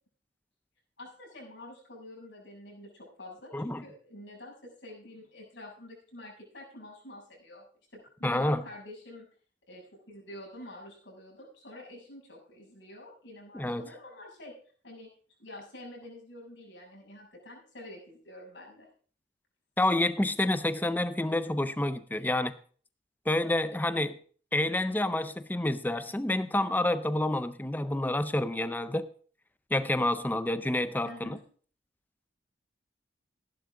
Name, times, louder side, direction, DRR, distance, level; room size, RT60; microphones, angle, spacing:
voice 1, 1.0-7.6 7.9-9.2 9.7-14.5 14.8-15.1 15.4-18.9 31.0-31.4, left 1 dB, 75° left, 6.8 m, -47 dB
voice 2, 8.2-8.6 13.5-13.8 19.8-22.5 23.3-24.2 24.5-29.1 29.7-31.4, left 1 dB, 10° left, 0.5 m, -28 dB
15.0 x 11.0 x 3.7 m
head